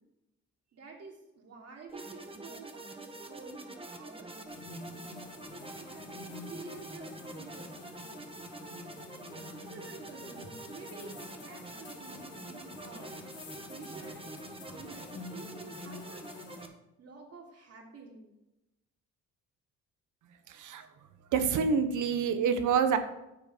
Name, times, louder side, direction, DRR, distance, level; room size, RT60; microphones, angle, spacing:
voice 1, 0.7-4.4 5.8-7.9 9.6-11.1 11.4-13.2 13.7-14.4 14.7-16.2 17.0-18.3, right 4 dB, 55° right, 1 dB, 3.1 m, -50 dB
sound 1, 1.9-16.7, right 2 dB, 20° right, 1.5 m, -46 dB
sound 2, 4.5-16.7, left 3 dB, 60° left, 3.7 m, -48 dB
voice 2, 20.5-20.9 21.3-23.0, right 6 dB, 80° right, 9 dB, 1.3 m, -27 dB
10.5 x 7.2 x 5.7 m, 0.92 s
cardioid pair, 90°, 30 cm